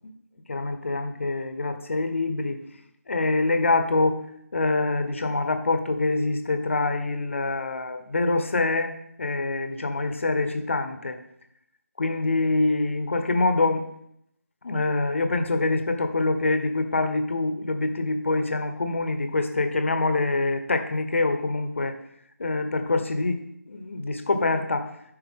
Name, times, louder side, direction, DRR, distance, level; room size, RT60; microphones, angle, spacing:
voice 1, 0.5-2.6 3.1-4.2 4.5-11.2 12.0-13.8 14.6-22.0 22.4-24.9, left 3 dB, 50° left, 7 dB, 1.2 m, -25 dB
13.5 x 5.5 x 3.7 m, 0.73 s
figure-of-eight pair, 160°, 9 cm